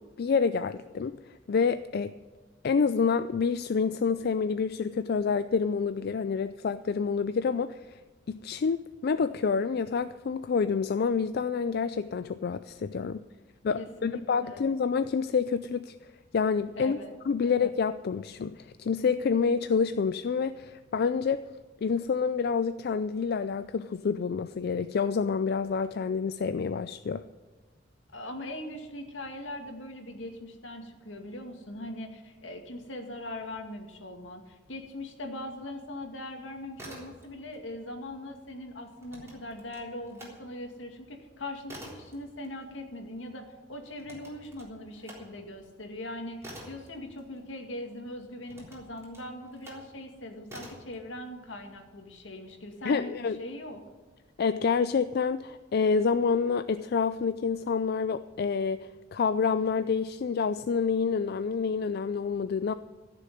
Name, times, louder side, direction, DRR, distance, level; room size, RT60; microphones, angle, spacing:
voice 1, 0.2-1.2 1.5-2.2 2.6-8.0 8.3-13.2 13.6-16.0 16.3-17.0 17.3-21.4 21.8-27.2 52.8-53.4 54.4-62.7, left 5 dB, 55° left, 12 dB, 0.4 m, -28 dB
voice 2, 13.8-14.7 16.7-17.1 17.4-17.7 28.1-53.1 53.4-53.8, left 1 dB, 80° left, 4 dB, 2.1 m, -41 dB
sound 1, 36.7-37.6 37.9-40.4 40.8-47.8 48.4-49.9 50.4-50.9, equal, 15° right, 3.7 m, -48 dB
15.0 x 6.8 x 9.9 m, 1.3 s
head